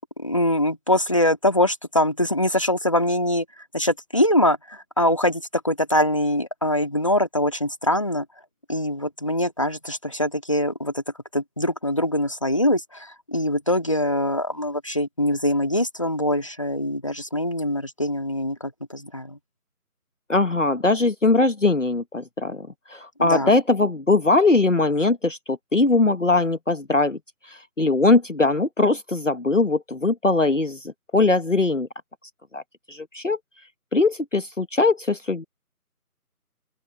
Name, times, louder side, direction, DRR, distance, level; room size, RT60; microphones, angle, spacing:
voice 1, 0.2-3.5 3.7-8.3 8.7-11.0 11.3-19.4 23.2-23.5, left 1 dB, 20° left, 1.9 m, -23 dB
voice 2, 20.3-27.2 27.4-31.9 32.5-32.6 32.9-33.4 33.9-35.4, left 3 dB, 55° left, 1.3 m, -21 dB
open air
figure-of-eight pair, 170°, 46 cm